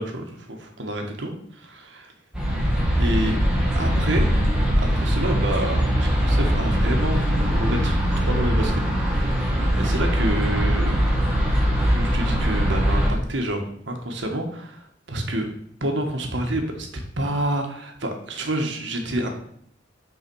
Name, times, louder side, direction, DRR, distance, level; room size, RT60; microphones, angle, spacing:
voice 1, 0.0-2.1 3.0-3.4 3.7-4.3 4.8-9.4 9.8-11.0 11.9-15.5 15.8-16.9 17.2-19.3, right 1 dB, 70° right, 3 dB, 1.6 m, -28 dB
sound 1, 2.3-13.1, equal, 5° right, 1.9 m, -21 dB
6.9 x 4.7 x 6.3 m, 0.66 s
head